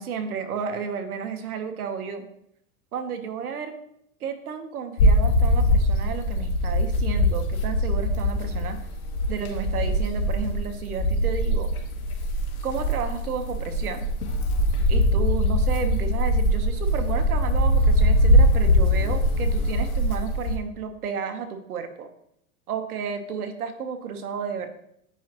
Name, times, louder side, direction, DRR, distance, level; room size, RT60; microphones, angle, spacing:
voice 1, 0.0-2.3 2.9-3.7 4.2-8.8 9.3-11.7 12.6-14.1 14.9-22.1 22.7-24.7, right 6 dB, 85° right, 7 dB, 1.1 m, -32 dB
sound 1, 5.0-20.6, equal, 75° left, 1.7 m, -22 dB
8.3 x 5.4 x 2.9 m, 0.74 s
hypercardioid pair, 105°, 43 cm